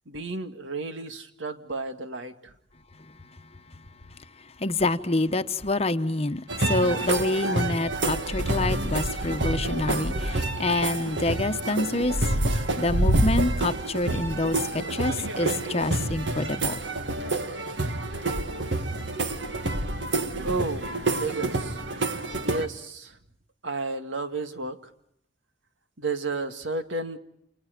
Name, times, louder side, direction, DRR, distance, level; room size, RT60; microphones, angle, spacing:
voice 1, 0.1-2.5 20.4-21.9 22.4-23.2 23.6-24.9 26.0-27.2, right 3 dB, 90° right, 2.1 m, -32 dB
voice 2, 4.6-12.2 12.8-16.8, left 2 dB, 35° left, 1.0 m, -27 dB
sound 1, 6.5-22.7, right 2 dB, 70° right, 2.0 m, -28 dB
29.5 x 28.0 x 5.1 m
head